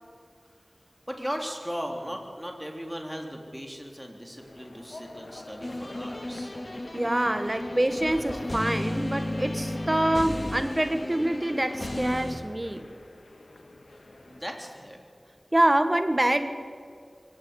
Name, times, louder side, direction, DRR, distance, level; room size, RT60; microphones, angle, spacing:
voice 1, 1.1-6.5 14.3-15.0, equal, 5° right, 2 dB, 3.6 m, -37 dB
sound 1, 4.4-14.5, left 2 dB, 75° left, 2.3 m, -46 dB
sound 2, 5.6-12.4, left 1 dB, 40° left, 2.6 m, -34 dB
voice 2, 6.9-12.9 15.5-16.5, right 1 dB, 30° right, 9 dB, 1.7 m, -25 dB
23.0 x 17.5 x 8.3 m, 2.2 s
wide cardioid pair, 55°, 0 cm